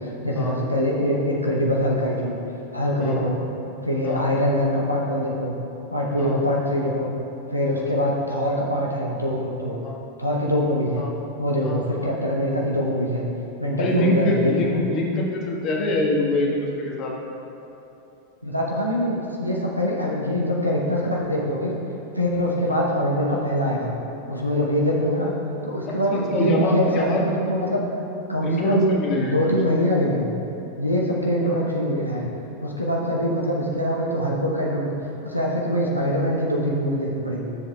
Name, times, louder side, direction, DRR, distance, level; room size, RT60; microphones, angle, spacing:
voice 1, 0.0-2.3 2.7-3.4 3.8-5.5 5.9-7.2 7.5-9.8 10.2-11.1 11.4-13.2 13.6-14.8 18.4-21.8 22.1-23.9 24.3-25.3 25.6-27.8 28.3-28.9 29.2-30.3 30.8-32.3 32.6-34.9 35.2-37.5, equal, 90° left, -3 dB, 0.8 m, -24 dB
voice 2, 13.8-17.1 26.1-27.2 27.5-27.6 28.4-29.5 31.4-31.5, left 1 dB, 35° left, -2 dB, 1.3 m, -24 dB
13.5 x 7.2 x 2.3 m, 3.0 s
figure-of-eight pair, 90°, 0 cm